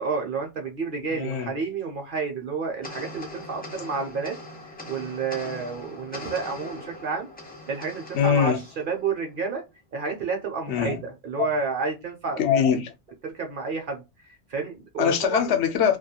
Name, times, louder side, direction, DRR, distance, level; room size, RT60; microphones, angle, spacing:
voice 1, 0.0-4.4 4.6-7.3 7.7-9.6 9.9-12.4 13.2-14.0 14.5-15.5, right 5 dB, 55° right, 0.7 m, -30 dB
voice 2, 1.1-1.5 8.1-8.6 10.7-11.0 11.4-11.5 12.4-12.9 15.0-16.0, left 7 dB, 75° left, 0.8 m, -22 dB
sound 1, 2.8-9.5, left 2 dB, 15° left, 0.4 m, -41 dB
2.4 x 2.2 x 2.7 m
omnidirectional pair, 1.2 m